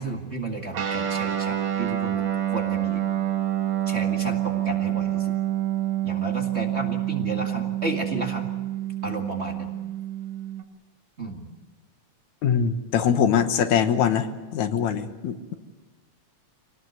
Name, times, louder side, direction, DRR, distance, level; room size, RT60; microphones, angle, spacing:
voice 1, 0.0-3.0 3.9-5.4 6.0-8.5 9.0-9.7 11.2-11.5, right 2 dB, 25° right, 1 dB, 2.0 m, -32 dB
Guitar, 0.7-10.6, right 12 dB, 70° right, 3.1 m, -27 dB
voice 2, 12.4-14.3 14.5-15.5, left 8 dB, 80° left, 8 dB, 2.6 m, -22 dB
25.5 x 18.5 x 8.0 m, 1.2 s
omnidirectional pair, 3.3 m